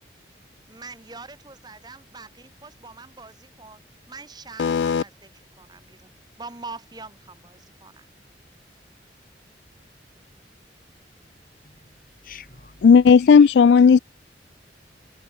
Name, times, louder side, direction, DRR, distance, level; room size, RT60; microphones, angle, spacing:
voice 1, 0.7-3.8 4.1-5.3 5.6-6.1 6.4-8.1, right 3 dB, 25° right, 1.7 m, -43 dB
voice 2, 4.6-5.0 12.8-14.0, left 6 dB, 75° left, 0.3 m, -13 dB
voice 3, 11.6-12.9 13.2-13.5, left 7 dB, 50° left, 5.3 m, -47 dB
head